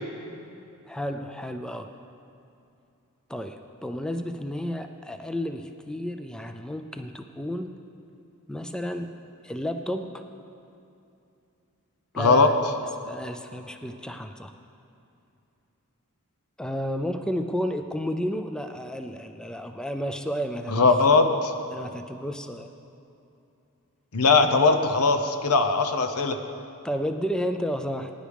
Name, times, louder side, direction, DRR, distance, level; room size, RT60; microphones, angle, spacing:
voice 1, 0.9-1.9 3.3-7.7 8.5-9.1 9.4-10.2 12.1-12.5 13.0-14.5 16.6-20.9 21.7-22.7 26.8-28.1, equal, 5° left, 7 dB, 0.4 m, -32 dB
voice 2, 12.2-12.5 20.7-21.5 24.1-26.4, left 4 dB, 85° left, 7 dB, 0.8 m, -20 dB
18.5 x 10.0 x 3.5 m, 2.7 s
head